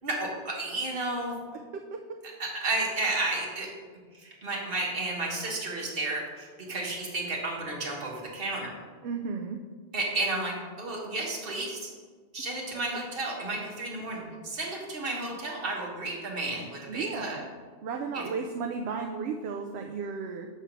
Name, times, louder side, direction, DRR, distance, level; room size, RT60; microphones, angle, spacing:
voice 1, 0.0-1.4 2.4-3.7 4.1-8.7 9.9-11.9 12.3-17.4 18.1-18.2, right 2 dB, 55° right, -2 dB, 1.5 m, -32 dB
voice 2, 9.0-9.6 16.9-17.5 17.8-20.5, right 5 dB, 70° right, 3 dB, 0.8 m, -34 dB
7.2 x 3.5 x 5.8 m, 1.5 s
omnidirectional pair, 1.1 m